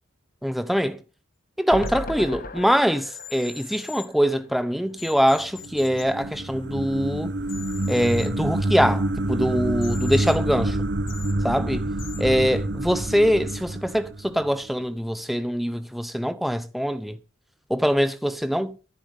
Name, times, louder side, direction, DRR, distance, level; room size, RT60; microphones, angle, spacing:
voice 1, 0.4-1.0 1.6-7.3 7.9-10.8 11.4-11.8 12.2-17.2 17.7-18.8, equal, ahead, 0.7 m, -23 dB
sound 1, 1.7-5.0 5.3-5.4 5.6-5.7, left 2 dB, 45° left, 1.1 m, -37 dB
sound 2, 1.8-1.9 3.1-4.1 5.0-6.0 7.4-8.3 9.8-10.4 11.1-11.3 12.0-12.2, left 8 dB, 75° left, 2.9 m, -41 dB
sound 3, 5.4-14.7, right 1 dB, 60° right, 1.1 m, -28 dB
13.0 x 10.5 x 5.4 m
head